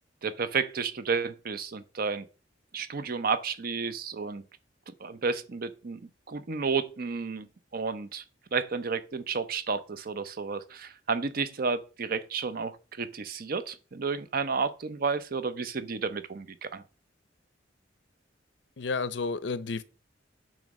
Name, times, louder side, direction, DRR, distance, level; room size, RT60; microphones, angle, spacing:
voice 1, 0.2-2.2 2.7-4.4 5.0-6.0 6.3-7.5 7.7-8.2 8.5-16.8, right 5 dB, 50° right, 0.7 m, -31 dB
voice 2, 18.8-19.8, left 4 dB, 70° left, 0.6 m, -31 dB
8.9 x 3.0 x 6.2 m
head